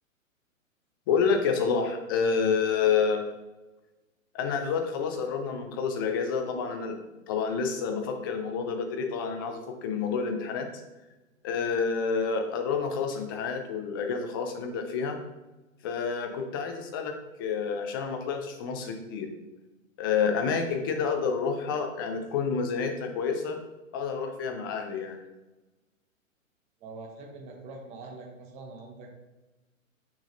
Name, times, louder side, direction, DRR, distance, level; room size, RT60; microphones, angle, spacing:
voice 1, 1.1-3.2 4.3-7.0 7.3-10.7 11.4-15.2 15.8-19.3 20.0-23.6 23.9-25.2, left 5 dB, 15° left, 5 dB, 0.4 m, -29 dB
voice 2, 26.8-29.1, right 3 dB, 15° right, 1 dB, 0.7 m, -44 dB
6.2 x 6.1 x 2.6 m, 1.1 s
figure-of-eight pair, 120°, 41 cm